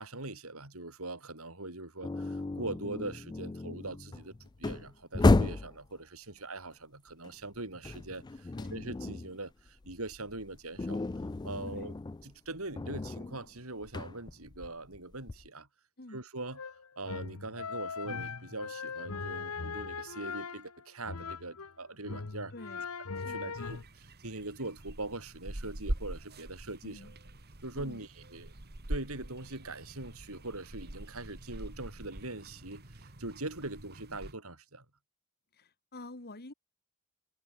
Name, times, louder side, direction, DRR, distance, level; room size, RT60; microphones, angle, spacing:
voice 1, 0.0-11.0 11.4-11.9 12.2-15.7 16.1-16.6 17.0-22.5 23.3-27.1 27.6-28.5 28.9-34.8, right 2 dB, 75° right, 6.5 m, -42 dB
sound 1, 2.0-5.8 7.2-9.4 9.7-15.5, left 2 dB, 20° left, 0.4 m, -32 dB
sound 2, 16.5-21.7 22.0-23.8, left 5 dB, 90° left, 1.2 m, -40 dB
voice 2, 22.5-22.9 23.2-23.5 26.8-27.1 27.7-28.0 35.5-36.5, left 2 dB, 45° left, 2.1 m, -48 dB
sound 3, 23.5-34.3, right 1 dB, 50° right, 2.3 m, -43 dB
head